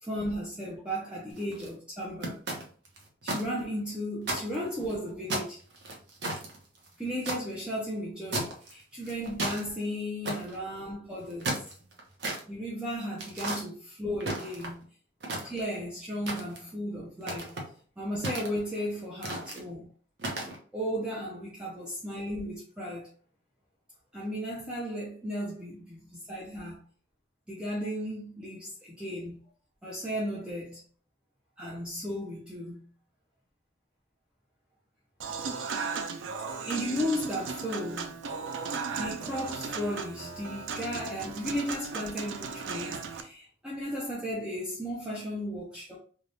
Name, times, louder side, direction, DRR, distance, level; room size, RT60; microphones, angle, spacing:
voice 1, 0.0-2.4 3.2-5.6 7.0-11.5 12.5-14.8 15.4-17.5 18.0-19.9 20.7-23.1 24.1-26.8 27.5-29.4 29.8-30.8 31.6-32.8 36.3-38.1 39.0-46.0, equal, 5° right, 0.5 m, -35 dB
sound 1, 1.3-1.7 2.2-3.4 3.8-3.9 4.2-4.9 5.3-7.4 8.3-8.7 9.0-9.6 10.2-10.6 11.2-12.4 13.2-13.6 14.2-14.8 15.2-15.8 16.3-16.7 17.2-17.7 18.2-18.8 19.2-19.6 20.2-20.6, right 2 dB, 60° right, 0.8 m, -34 dB
Human voice / Acoustic guitar / Piano, 35.2-43.2, right 5 dB, 80° right, 0.4 m, -36 dB
3.3 x 2.3 x 2.6 m
head